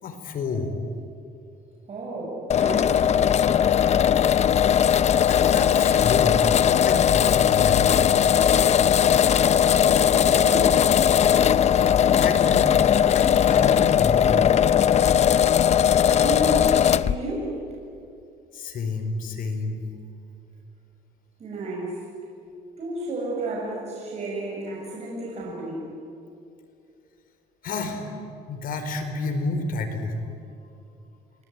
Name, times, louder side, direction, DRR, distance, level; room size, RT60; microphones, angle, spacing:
voice 1, 0.0-0.7 4.9-8.1 12.0-12.7 13.1-14.4 18.5-19.8 27.6-28.1 28.5-30.1, left 3 dB, 55° left, 6 dB, 4.5 m, -30 dB
voice 2, 1.9-3.2 9.6-10.8 16.2-16.7 17.0-17.6 21.4-22.0 22.8-25.9, right 1 dB, 40° right, -4 dB, 7.7 m, -32 dB
sound 1, 2.5-17.2, left 9 dB, 40° left, 0.7 m, -19 dB
29.5 x 19.5 x 9.7 m, 2.6 s
cardioid pair, 110°, 17 cm